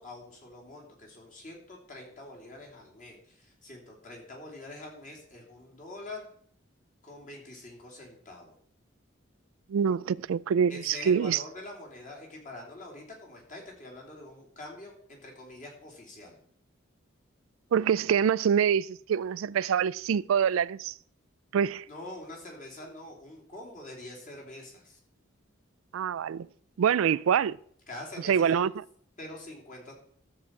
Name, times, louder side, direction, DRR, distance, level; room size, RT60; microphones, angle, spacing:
voice 1, 0.0-6.3 7.0-8.5 10.7-16.4 21.9-25.0 27.9-28.6 29.2-29.9, left 2 dB, 40° left, 3.1 m, -45 dB
voice 2, 9.7-11.4 17.7-20.9 21.5-21.8 25.9-26.5 26.8-27.6 28.2-28.7, right 7 dB, 90° right, 0.3 m, -25 dB
13.0 x 7.4 x 4.7 m
head